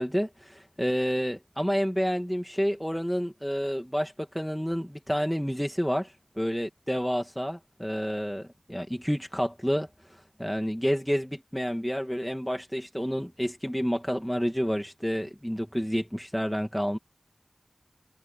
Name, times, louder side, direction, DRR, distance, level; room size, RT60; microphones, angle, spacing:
voice 1, 0.0-17.0, equal, 5° left, 1.7 m, -29 dB
wide cardioid pair, 40°, 0 cm